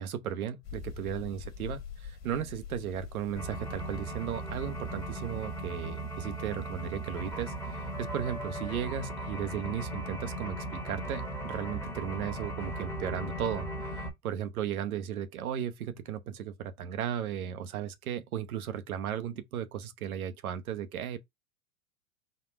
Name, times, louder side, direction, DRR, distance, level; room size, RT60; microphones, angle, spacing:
voice 1, 0.0-7.5 8.0-21.2, right 9 dB, 85° right, 0.9 m, -35 dB
sound 1, 0.6-9.1, left 7 dB, 40° left, 1.5 m, -47 dB
sound 2, 3.4-14.1, right 1 dB, 5° left, 0.9 m, -37 dB
4.1 x 2.4 x 4.0 m
hypercardioid pair, 120°, 42 cm